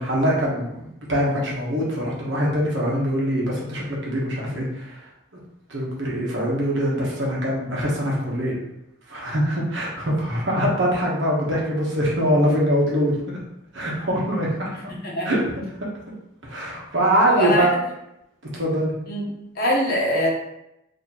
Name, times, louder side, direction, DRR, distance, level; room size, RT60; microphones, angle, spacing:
voice 1, 0.0-5.0 5.7-8.5 9.1-13.4 13.7-14.7 15.2-15.4 16.4-17.7 18.5-18.9, equal, 60° right, -3 dB, 1.0 m, -23 dB
voice 2, 14.9-15.3 17.3-17.7 19.1-19.2 19.6-20.3, left 1 dB, 45° left, -3 dB, 1.0 m, -22 dB
4.2 x 2.8 x 2.9 m, 0.83 s
head